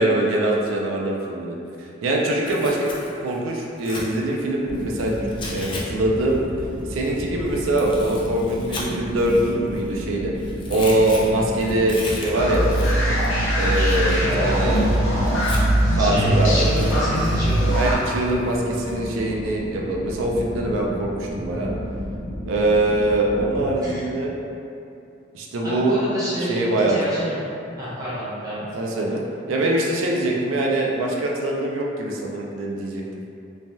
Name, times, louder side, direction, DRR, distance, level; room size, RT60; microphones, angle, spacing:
voice 1, 0.0-1.6 2.0-2.9 3.2-5.1 5.5-6.4 6.9-10.3 10.7-12.7 13.6-14.8 15.9-16.7 17.8-21.7 22.5-24.3 25.3-26.0 26.5-27.2 28.8-29.2 29.5-33.0, right 1 dB, 85° right, -2 dB, 0.4 m, -23 dB
Tearing, 2.3-5.8 6.1-10.0 10.3-15.9 16.4-18.9, left 2 dB, 25° left, 0.4 m, -38 dB
sound 1, 4.6-23.7, equal, 55° right, 0.7 m, -32 dB
sound 2, 12.3-17.9, right 1 dB, 90° left, 0.8 m, -21 dB
voice 2, 14.2-15.7 16.0-17.7 23.8-24.1 25.6-27.4 27.8-28.7, equal, 20° right, -11 dB, 0.8 m, -29 dB
3.2 x 2.2 x 2.7 m, 2.7 s
head